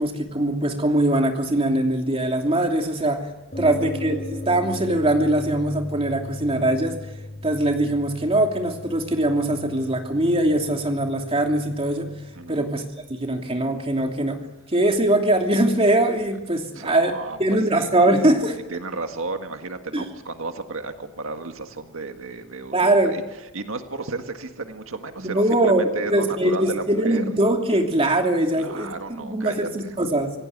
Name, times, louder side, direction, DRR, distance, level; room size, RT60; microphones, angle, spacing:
voice 1, 0.0-3.2 3.6-6.9 7.4-12.1 12.5-12.8 13.2-14.4 14.7-17.1 17.4-18.6 19.9-20.0 22.7-23.1 25.2-28.9 29.2-30.3, right 1 dB, 30° right, 3 dB, 2.9 m, -21 dB
sound 1, 3.5-12.6, left 2 dB, 35° left, 5.1 m, -37 dB
voice 2, 16.7-17.4 17.7-17.9 18.7-23.2 23.5-27.2 28.5-29.9, right 3 dB, 90° right, 6 dB, 1.7 m, -33 dB
26.5 x 17.5 x 9.6 m, 1.1 s
head